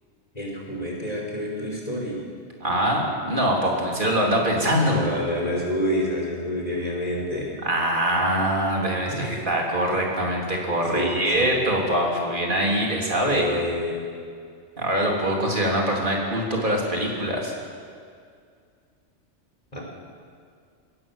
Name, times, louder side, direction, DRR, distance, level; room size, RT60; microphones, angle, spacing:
voice 1, 0.3-2.2 4.8-7.5 9.1-9.4 10.9-11.4 13.2-14.0 19.7-19.8, equal, 30° left, -2 dB, 5.3 m, -28 dB
voice 2, 2.6-5.0 7.6-13.5 14.8-17.5, right 1 dB, 40° right, -2 dB, 3.8 m, -23 dB
21.5 x 17.5 x 7.4 m, 2.2 s
omnidirectional pair, 1.3 m